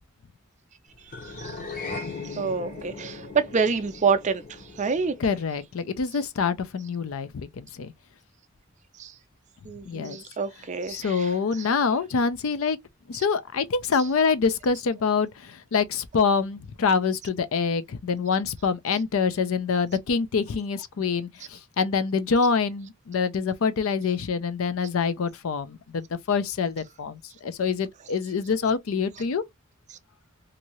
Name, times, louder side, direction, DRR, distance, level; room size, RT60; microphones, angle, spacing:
sound 1, 1.1-5.6, left 3 dB, 40° left, 0.9 m, -38 dB
voice 1, 2.3-4.4 4.8-5.1 9.0-9.1 9.6-11.3 11.6-11.7, right 5 dB, 35° right, 0.4 m, -27 dB
voice 2, 5.2-7.9 9.9-10.2 10.9-12.8 13.1-29.4, left 5 dB, 65° left, 0.4 m, -26 dB
2.7 x 2.6 x 2.9 m
head